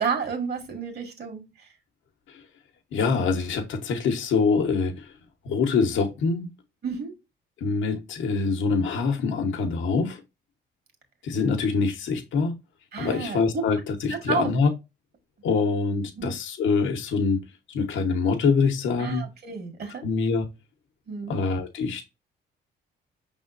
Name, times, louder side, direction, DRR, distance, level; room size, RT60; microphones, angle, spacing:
voice 1, 0.0-1.5 6.8-7.1 12.9-13.4 14.1-14.5 16.2-16.3 19.0-20.0 21.1-21.4, right 6 dB, 55° right, 1.9 m, -30 dB
voice 2, 2.9-5.1 5.4-6.5 7.6-10.2 11.2-12.6 13.0-14.7 15.4-19.3 20.0-20.4 21.3-22.0, left 4 dB, 75° left, 1.0 m, -25 dB
5.6 x 3.5 x 2.5 m
cardioid pair, 90°, 20 cm